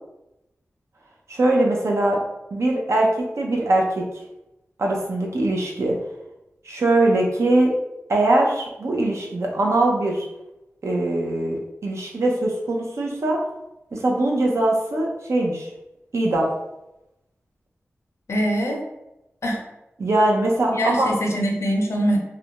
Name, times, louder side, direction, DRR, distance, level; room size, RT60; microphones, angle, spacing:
voice 1, 1.3-2.2 2.5-4.1 4.8-6.0 6.6-7.7 8.1-10.3 10.8-13.4 13.9-15.7 16.1-16.5 20.0-21.1, right 2 dB, 70° right, -1 dB, 0.6 m, -21 dB
voice 2, 18.3-18.9 19.4-19.7 20.7-22.2, equal, 65° left, 0 dB, 0.6 m, -23 dB
2.4 x 2.1 x 2.9 m, 0.92 s
cardioid pair, 55°, 5 cm